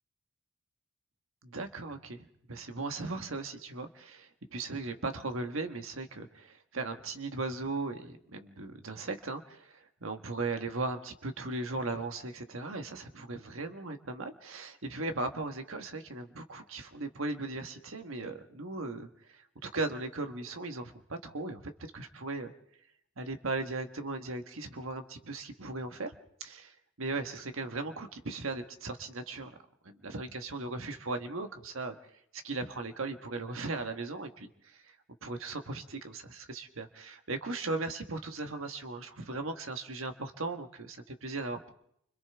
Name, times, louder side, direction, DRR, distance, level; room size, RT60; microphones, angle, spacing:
voice 1, 1.4-21.6 21.9-22.5 23.2-26.1 26.4-29.6 29.8-31.9 32.3-35.0 35.2-41.7, right 3 dB, 80° right, 6 dB, 1.4 m, -38 dB
29.0 x 25.5 x 3.5 m, 0.72 s
head